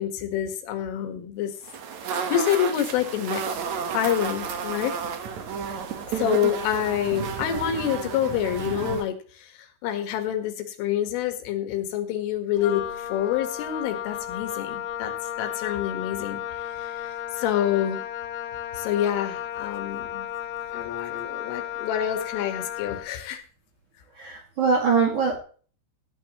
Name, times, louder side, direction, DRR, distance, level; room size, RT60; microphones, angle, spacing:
voice 1, 0.0-1.5 2.0-3.4 3.9-4.9 6.1-15.1 15.4-16.4 16.7-18.0 18.7-20.3 20.7-23.4, left 10 dB, 85° left, 6 dB, 4.3 m, -27 dB
sound 1, 1.6-9.0, right 6 dB, 75° right, 1.7 m, -31 dB
Wind instrument woodwind instrument, 12.6-23.2, left 11 dB, 70° left, 3.0 m, -34 dB
voice 2, 24.1-25.4, right 5 dB, 50° right, -1 dB, 3.1 m, -22 dB
17.5 x 10.0 x 3.1 m, 0.41 s
omnidirectional pair, 5.5 m